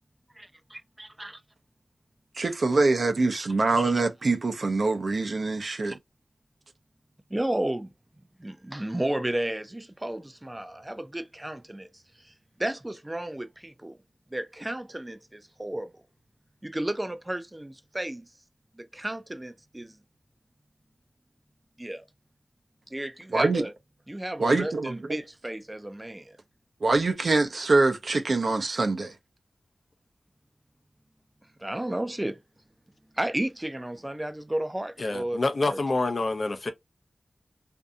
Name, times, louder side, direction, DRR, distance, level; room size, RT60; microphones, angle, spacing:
voice 1, 0.4-0.8 1.2-1.3 3.8-3.9 7.3-7.9 8.4-11.9 12.2-12.3 12.6-14.0 14.3-15.9 16.6-18.3 18.8-20.0 21.8-22.0 22.9-23.7 24.1-26.4 31.6-32.4 33.1-35.4 35.7-35.8, right 1 dB, 20° right, 0.5 m, -32 dB
voice 2, 2.3-6.0 23.3-23.6 24.4-25.2 26.8-29.1, right 3 dB, 65° right, 0.6 m, -24 dB
voice 3, 35.0-36.7, left 2 dB, 55° left, 0.6 m, -27 dB
2.6 x 2.6 x 2.2 m
wide cardioid pair, 75°, 0 cm